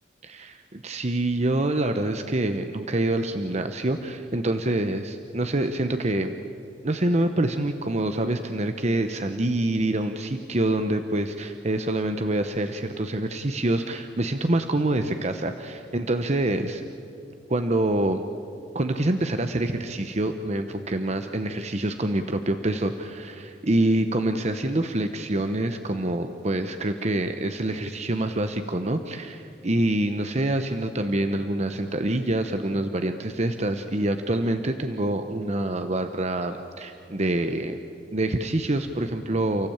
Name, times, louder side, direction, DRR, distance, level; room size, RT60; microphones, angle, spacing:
voice 1, 0.2-6.4 6.8-16.9 17.5-18.2 18.7-37.8 38.1-39.7, right 1 dB, 40° right, 7 dB, 1.0 m, -26 dB
30.0 x 15.5 x 8.8 m, 2.8 s
head